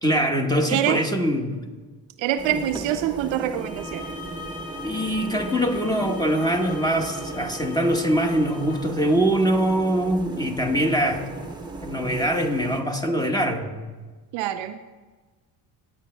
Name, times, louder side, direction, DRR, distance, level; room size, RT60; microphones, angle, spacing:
voice 1, 0.0-1.6 2.5-2.6 4.8-11.3 11.8-13.7, equal, 10° left, 3 dB, 1.4 m, -23 dB
voice 2, 0.7-1.0 2.2-4.1 14.3-14.8, right 12 dB, 65° right, 9 dB, 0.6 m, -25 dB
sound 1, 2.4-12.8, right 3 dB, 10° right, 1.2 m, -37 dB
sound 2, 3.6-8.9, left 4 dB, 80° left, 1.7 m, -41 dB
17.5 x 8.6 x 2.2 m, 1.3 s
hypercardioid pair, 70°, 49 cm